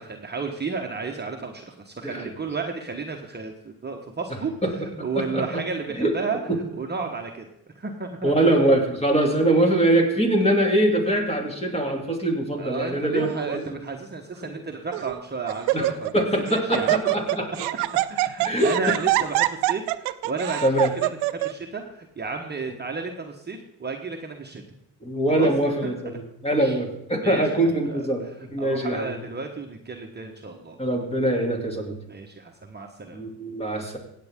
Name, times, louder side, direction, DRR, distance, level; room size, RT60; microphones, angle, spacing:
voice 1, 0.0-4.5 5.0-6.4 6.7-7.5 7.7-8.3 12.6-16.1 16.5-17.4 18.1-20.6 21.0-24.6 25.3-25.5 26.6-26.7 27.2-28.3 28.6-30.8 32.1-33.2, right 4 dB, 25° right, 2 dB, 1.2 m, -33 dB
voice 2, 2.0-2.3 4.6-4.7 5.2-5.6 5.9-6.2 6.5-6.6 8.2-13.6 15.7-17.5 18.4-18.7 20.6-20.9 25.0-29.2 30.8-32.0 33.1-34.0, right 1 dB, 15° left, 2 dB, 2.7 m, -23 dB
Laughter, 13.2-13.6 14.3-14.4 14.9-15.2 15.5-16.2 16.5-21.5, right 18 dB, 85° right, 0.5 m, -25 dB
16.0 x 8.5 x 3.6 m, 0.80 s
supercardioid pair, 70°, 40 cm